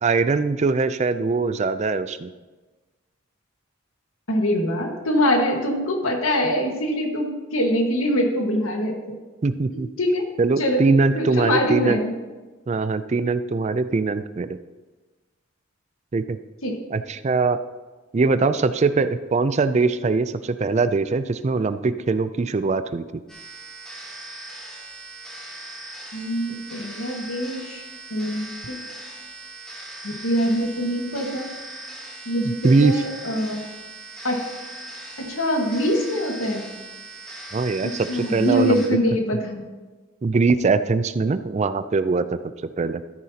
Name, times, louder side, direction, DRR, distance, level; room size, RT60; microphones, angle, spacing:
voice 1, 0.0-2.3 9.4-9.9 10.4-12.0 12.7-14.6 16.1-16.4 16.9-17.6 18.1-23.0 32.4-33.0 37.5-38.8 40.2-43.0, right 4 dB, 35° right, 12 dB, 0.3 m, -22 dB
voice 2, 4.3-9.2 9.7-10.3 10.6-10.8 11.1-12.1 16.6-16.8 26.1-28.8 30.0-31.5 32.2-33.6 34.2-34.4 35.3-36.6 37.8-39.7, equal, 80° left, 2 dB, 1.6 m, -24 dB
sound 1, 23.3-38.9, right 2 dB, 5° left, 1.7 m, -39 dB
13.5 x 9.5 x 2.9 m, 1.2 s
head